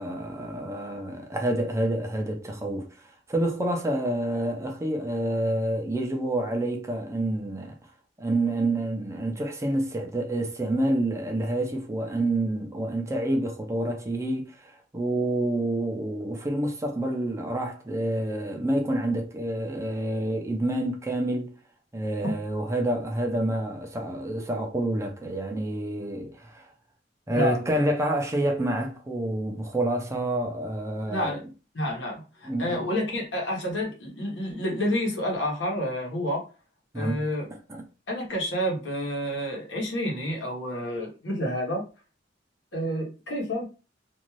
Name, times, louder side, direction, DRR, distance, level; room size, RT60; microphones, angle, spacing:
voice 1, 0.0-2.9 3.3-7.7 8.2-21.5 21.9-26.7 27.3-31.4 32.4-32.8 36.9-37.2 37.5-37.8, right 1 dB, 15° right, 0.5 m, -28 dB
voice 2, 31.1-31.4 31.7-36.4 36.9-37.5 38.1-41.8 42.7-43.6, equal, 80° left, 1.1 m, -29 dB
2.6 x 2.3 x 3.0 m
head